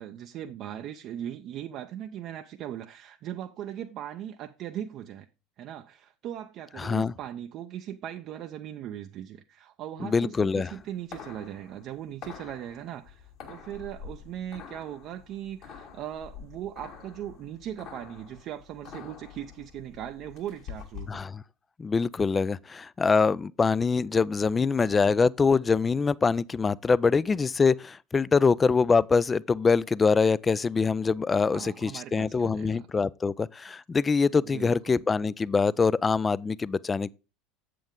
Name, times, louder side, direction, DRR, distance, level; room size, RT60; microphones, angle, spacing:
voice 1, 0.0-5.3 5.6-21.2 31.5-32.9 34.4-35.0, right 11 dB, 50° right, 0.5 m, -39 dB
voice 2, 6.8-7.1 10.0-10.7 21.1-21.4 21.8-37.1, left 5 dB, 20° left, 0.3 m, -24 dB
sound 1, 10.5-21.2, left 7 dB, 55° left, 2.0 m, -46 dB
7.9 x 7.6 x 3.6 m
hypercardioid pair, 75°, 0 cm